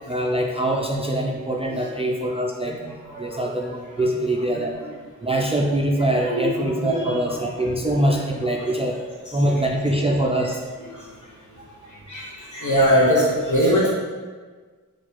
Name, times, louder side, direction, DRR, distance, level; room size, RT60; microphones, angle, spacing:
voice 1, 0.1-2.7 3.2-4.8 5.2-9.0 9.3-10.6, right 1 dB, 20° right, 0 dB, 0.3 m, -23 dB
voice 2, 2.7-3.5 4.0-4.1 6.1-7.1 7.6-7.7 8.0-8.1 8.6-8.7 9.6-9.7 10.9-11.0 12.1-12.2 12.5-13.9, equal, 60° left, -6 dB, 1.3 m, -22 dB
4.2 x 2.4 x 4.4 m, 1.5 s
wide cardioid pair, 70°, 34 cm